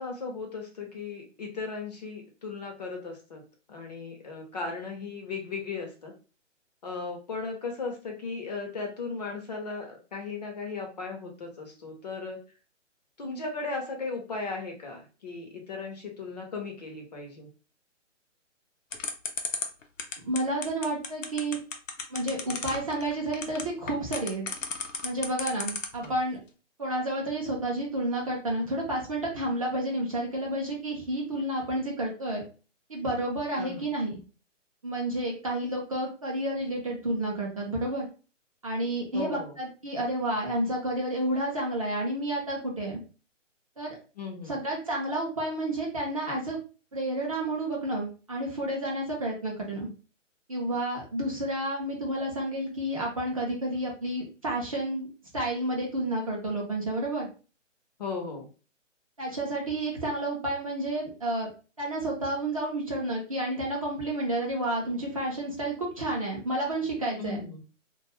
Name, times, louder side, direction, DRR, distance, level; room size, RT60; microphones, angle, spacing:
voice 1, 0.0-3.4 3.7-6.1 6.8-12.4 13.2-17.5 26.0-26.1 33.5-33.9 39.1-39.6 44.2-44.6 58.0-58.5 67.2-67.6, left 4 dB, 35° left, 2 dB, 0.5 m, -36 dB
sound 1, 18.9-26.1, left 5 dB, 80° left, 0.7 m, -33 dB
voice 2, 20.2-21.6 22.1-24.5 25.0-26.4 26.8-32.4 32.9-34.2 34.8-38.1 38.6-43.0 43.8-44.0 44.5-46.6 46.9-49.9 50.5-55.1 55.3-57.3 59.2-61.5 61.8-67.4, right 1 dB, 30° right, -2 dB, 0.4 m, -30 dB
2.5 x 2.2 x 2.9 m, 0.35 s
figure-of-eight pair, 140°, 38 cm